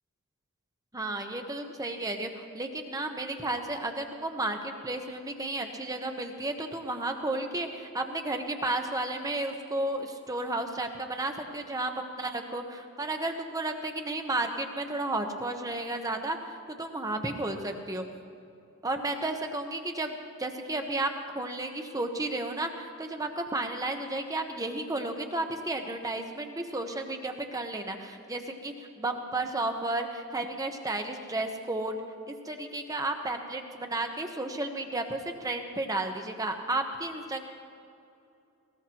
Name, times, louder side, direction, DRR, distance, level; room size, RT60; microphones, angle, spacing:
voice 1, 0.9-16.4 16.7-18.0 18.8-21.1 21.3-32.0 32.3-37.4, right 2 dB, 15° right, 5 dB, 0.9 m, -33 dB
20.5 x 18.5 x 3.0 m, 2.6 s
head